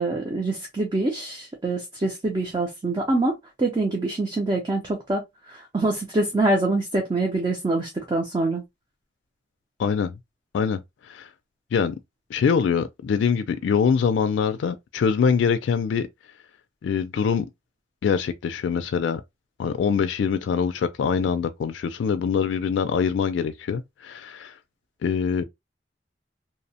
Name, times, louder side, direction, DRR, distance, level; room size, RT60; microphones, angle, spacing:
voice 1, 0.0-5.2 5.5-8.6, right 2 dB, 25° right, 0.4 m, -25 dB
voice 2, 9.8-10.2 10.5-10.8 11.1-11.3 11.7-12.0 12.3-16.1 16.8-17.5 18.0-19.2 19.6-24.5 25.0-25.4, left 6 dB, 90° left, 0.3 m, -24 dB
2.7 x 2.0 x 2.7 m
head